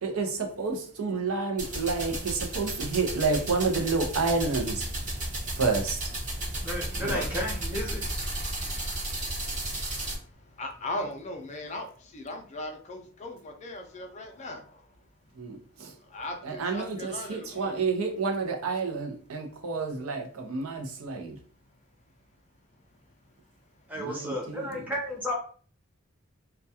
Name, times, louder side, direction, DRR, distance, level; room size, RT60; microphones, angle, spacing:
voice 1, 0.0-4.8 5.5-6.1 7.0-7.1 15.3-15.9 16.4-21.4 24.0-24.8, right 4 dB, 85° right, 0.5 m, -30 dB
sound 1, 1.6-10.2, right 1 dB, 35° right, 0.9 m, -33 dB
voice 2, 5.2-5.6 6.4-6.7 7.1-7.3 8.5-14.8 16.1-17.7, left 1 dB, 35° left, 0.4 m, -39 dB
voice 3, 6.6-8.0 23.9-25.3, left 1 dB, 10° right, 0.7 m, -33 dB
2.2 x 2.2 x 2.7 m
head